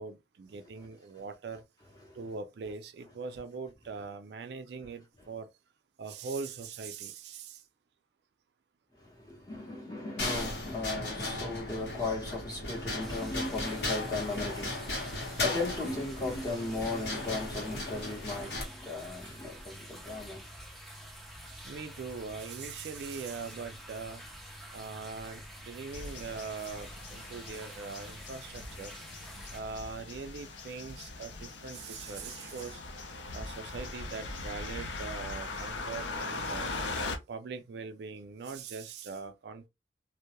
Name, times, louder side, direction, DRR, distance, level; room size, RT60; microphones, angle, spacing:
voice 1, 0.0-1.6 2.1-5.5 6.0-7.6 21.5-24.2 24.7-29.0 29.5-32.8 33.3-36.7 37.3-39.7, right 4 dB, 65° right, 0.3 m, -41 dB
voice 2, 9.0-20.5, left 2 dB, 20° left, 0.8 m, -36 dB
sound 1, 10.2-18.6, left 2 dB, 65° left, 0.9 m, -36 dB
sound 2, 13.0-29.6, equal, ahead, 0.4 m, -48 dB
sound 3, 25.9-37.2, left 3 dB, 85° left, 0.5 m, -40 dB
2.2 x 2.0 x 2.8 m
head